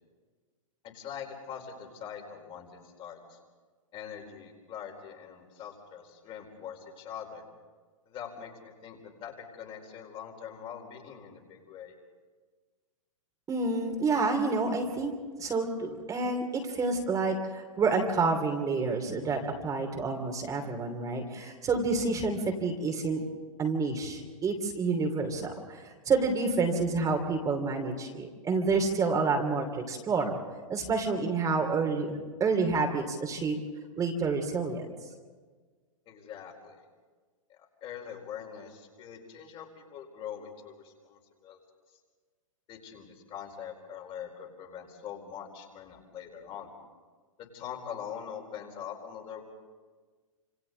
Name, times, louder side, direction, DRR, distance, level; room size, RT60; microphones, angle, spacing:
voice 1, 0.8-3.4 3.9-7.4 8.1-8.5 8.8-9.3 9.6-11.9 36.1-36.8 37.5-41.6 42.7-46.7 47.4-49.4, left 8 dB, 30° left, 2 dB, 4.4 m, -43 dB
voice 2, 13.5-15.1 15.4-23.2 23.6-30.4 30.7-33.6 34.0-34.9, right 4 dB, 20° right, 3 dB, 3.0 m, -29 dB
29.0 x 27.0 x 4.0 m, 1.4 s
figure-of-eight pair, 110°, 17 cm